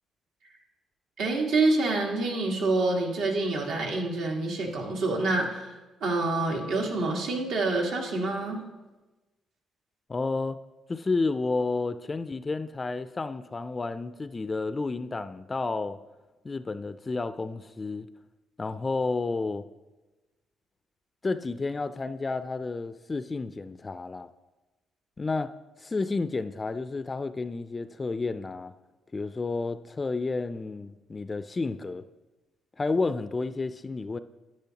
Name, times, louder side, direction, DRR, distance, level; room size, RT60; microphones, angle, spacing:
voice 1, 1.2-5.7 6.0-8.6, right 2 dB, 80° right, 0 dB, 1.6 m, -27 dB
voice 2, 10.1-10.6 10.9-16.0 16.4-18.1 18.6-19.6 21.2-24.3 25.2-25.5 25.8-28.7 29.1-32.0 32.8-34.2, left 3 dB, 25° left, 12 dB, 0.3 m, -31 dB
10.5 x 9.8 x 2.9 m, 1.1 s
cardioid pair, 90°, 0 cm